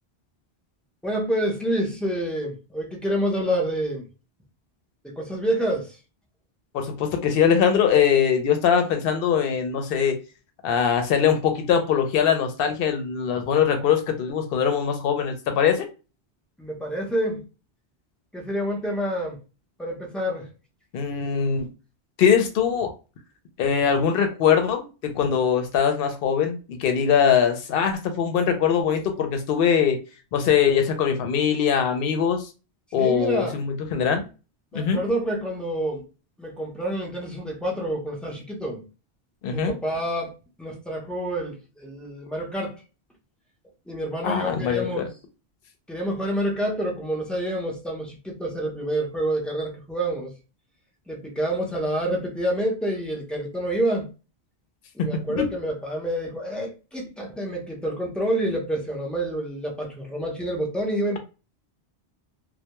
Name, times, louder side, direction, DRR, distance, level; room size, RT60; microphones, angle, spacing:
voice 1, 1.0-4.0 5.0-6.0 16.6-17.4 18.3-19.4 19.8-20.5 32.9-33.6 34.7-36.0 36.4-38.8 39.5-40.3 40.6-42.8 43.9-45.0 45.9-50.3 51.1-54.1 54.9-61.2, right 1 dB, ahead, 0.5 m, -28 dB
voice 2, 6.7-10.2 10.6-15.9 20.9-21.7 22.2-22.9 23.6-30.0 30.3-32.5 32.9-34.2 34.7-35.0 39.4-39.7 44.2-45.1 55.0-55.5, left 7 dB, 70° left, 0.8 m, -22 dB
2.2 x 2.1 x 2.9 m
omnidirectional pair, 1.1 m